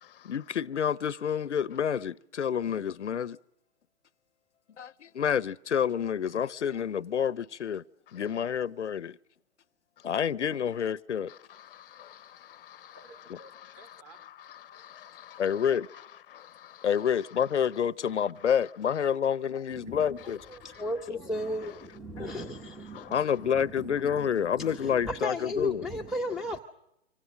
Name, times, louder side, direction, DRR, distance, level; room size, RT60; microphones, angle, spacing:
voice 1, 0.2-3.4 4.8-7.8 8.1-9.2 10.0-11.3 15.4-15.8 16.8-20.4 23.1-25.8, left 8 dB, 80° left, 0.8 m, -28 dB
voice 2, 11.3-13.0 14.6-15.4 16.3-16.9 22.9-23.1, left 11 dB, 50° left, 0.8 m, -50 dB
voice 3, 13.0-14.2 14.7-15.1 15.6-16.0 17.1-17.2 19.8-21.8 22.1-22.7 23.0-23.3, right 2 dB, 30° right, 4.4 m, -55 dB
voice 4, 19.7-20.0 20.8-26.6, left 1 dB, ahead, 1.1 m, -35 dB
26.0 x 24.5 x 6.3 m
hypercardioid pair, 130°, 35 cm